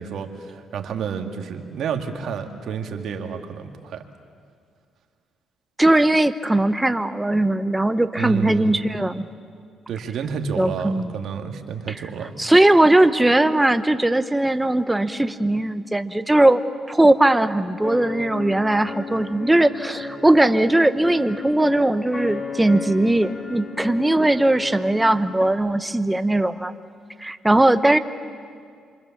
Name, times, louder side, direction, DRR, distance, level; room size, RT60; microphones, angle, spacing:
voice 1, 0.0-4.0 8.2-8.8 9.9-12.3, right 6 dB, 70° right, 5 dB, 2.1 m, -30 dB
voice 2, 5.8-9.3 10.6-11.1 11.9-12.0 12.4-16.6 16.9-26.7 27.2-28.0, right 1 dB, 10° right, 11 dB, 1.0 m, -19 dB
sound 1, 17.8-25.5, left 4 dB, 50° left, 3.7 m, -35 dB
27.0 x 25.0 x 7.4 m, 2.2 s
cardioid pair, 90°, 0 cm